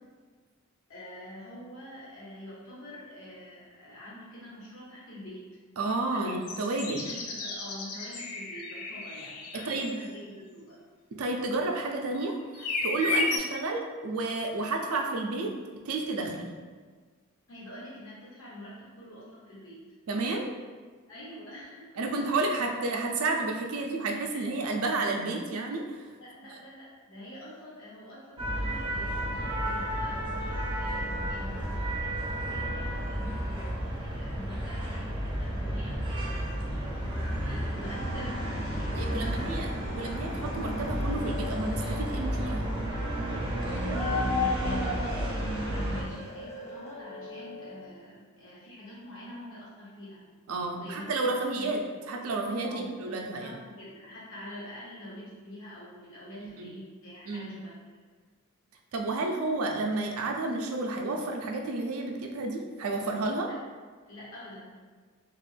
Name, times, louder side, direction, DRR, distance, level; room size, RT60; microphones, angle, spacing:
voice 1, 0.9-5.4 6.1-6.3 6.6-10.8 17.5-19.8 21.1-22.0 24.1-24.6 26.2-38.4 38.8-39.6 43.9-50.2 50.8-51.7 52.6-58.0 63.5-63.6 64.1-64.7, left 1 dB, 65° left, -7 dB, 1.2 m, -46 dB
voice 2, 5.8-7.0 9.5-10.0 11.1-15.5 15.8-16.5 20.1-20.5 22.0-26.1 33.3-33.4 38.9-39.7 39.9-42.7 50.5-53.5 56.4-56.7 57.3-57.5 58.9-63.5, right 2 dB, 75° right, 2 dB, 0.4 m, -31 dB
sound 1, 6.4-9.9 12.1-12.2 12.5-13.4, left 2 dB, 90° left, 0.5 m, -33 dB
sound 2, 28.4-46.0, equal, 25° right, 0.5 m, -31 dB
sound 3, 37.5-47.9, left 3 dB, 30° left, 0.4 m, -44 dB
2.9 x 2.4 x 3.2 m, 1.5 s
head